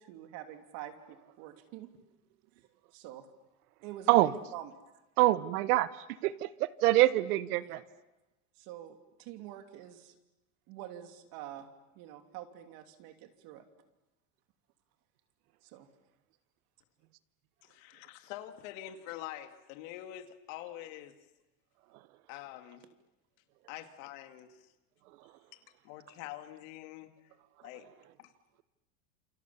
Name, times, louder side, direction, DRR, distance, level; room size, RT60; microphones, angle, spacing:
voice 1, 0.0-1.9 2.9-3.3 3.8-4.7 7.6-7.8 8.6-10.1 10.7-11.7 11.9-13.6 15.6-15.9, right 12 dB, 50° right, 7 dB, 3.0 m, -46 dB
voice 2, 5.2-5.9 6.2-7.8, right 16 dB, 80° right, 15 dB, 1.2 m, -25 dB
voice 3, 17.6-21.2 22.3-22.9 23.7-24.7 25.5-27.1 27.6-27.9 28.2-28.3, left 13 dB, 60° left, 8 dB, 2.4 m, -45 dB
28.5 x 28.5 x 7.1 m, 1.0 s
supercardioid pair, 160°, 44 cm